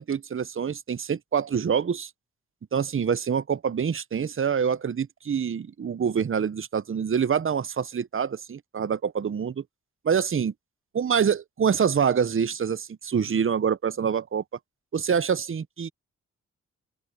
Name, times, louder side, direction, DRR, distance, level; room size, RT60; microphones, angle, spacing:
voice 1, 0.0-2.1 2.7-9.6 10.0-10.5 10.9-14.4 14.9-15.9, right 7 dB, 40° right, 0.8 m, -26 dB
open air
supercardioid pair, 45°, 32 cm